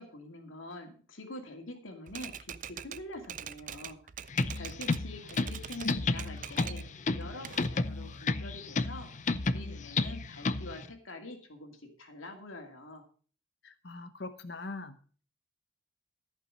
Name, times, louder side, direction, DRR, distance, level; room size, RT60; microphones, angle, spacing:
voice 1, 0.0-9.1 9.4-13.0, left 2 dB, 80° left, 4 dB, 2.4 m, -46 dB
Typewriter, 2.1-5.0 5.3-6.9 7.2-8.2, right 9 dB, 40° right, 0.4 m, -44 dB
sound 1, 4.3-10.9, left 3 dB, 35° left, 0.5 m, -32 dB
voice 2, 13.6-15.0, left 2 dB, 55° left, 10 dB, 0.9 m, -41 dB
14.0 x 5.9 x 6.3 m, 0.41 s
head